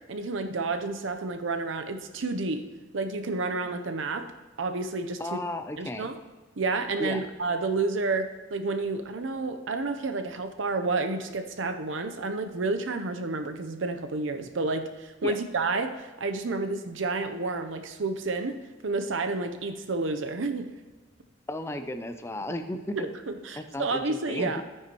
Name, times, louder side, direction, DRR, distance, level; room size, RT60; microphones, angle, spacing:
voice 1, 0.1-2.7 2.9-4.3 4.6-5.4 5.8-6.2 6.6-20.7 23.0-24.6, right 3 dB, 70° right, 7 dB, 0.7 m, -30 dB
voice 2, 5.2-6.1 7.0-7.2 15.2-15.4 21.5-23.1 23.6-24.6, left 1 dB, 15° left, 8 dB, 0.4 m, -34 dB
12.5 x 9.2 x 3.0 m, 1.3 s
head